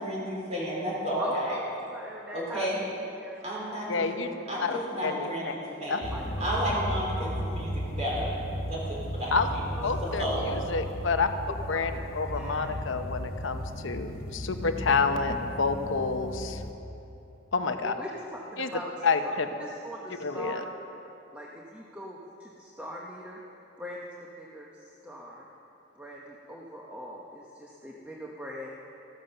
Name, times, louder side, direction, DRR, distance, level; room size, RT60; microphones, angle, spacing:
voice 1, 0.0-1.6 2.3-2.8 3.4-6.1 6.4-8.3 8.7-9.3 10.0-10.5, equal, 35° right, -5 dB, 4.1 m, -32 dB
voice 2, 1.2-1.6 1.9-2.7 3.1-3.3 3.7-3.9 4.4-4.5 6.1-6.5 9.7-10.2 10.8-11.0 11.5-12.7 17.8-19.3 19.6-20.6 21.0-23.4 23.8-25.5 25.9-28.7, equal, 10° right, -3 dB, 1.0 m, -41 dB
voice 3, 3.9-4.3 4.6-5.5 5.9-6.0 9.3-9.5 9.8-11.3 11.7-16.6 17.5-17.9 18.6-18.7 19.0-19.5 20.2-20.6, left 4 dB, 75° left, 7 dB, 0.8 m, -29 dB
sound 1, 6.0-16.7, equal, 45° left, 1.1 m, -35 dB
15.0 x 12.5 x 6.7 m, 2.9 s
head